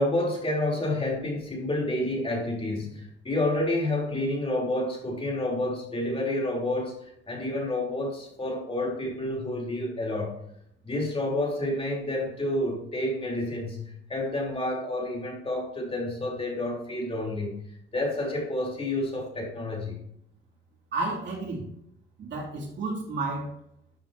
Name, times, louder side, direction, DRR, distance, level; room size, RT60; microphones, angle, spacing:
voice 1, 0.0-10.4 10.8-17.6 17.9-20.0, left 1 dB, 30° left, -2 dB, 3.9 m, -29 dB
voice 2, 20.9-21.7 22.2-23.5, right 3 dB, 65° right, -2 dB, 3.0 m, -31 dB
13.0 x 7.6 x 2.9 m, 0.74 s
cardioid pair, 90°, 20 cm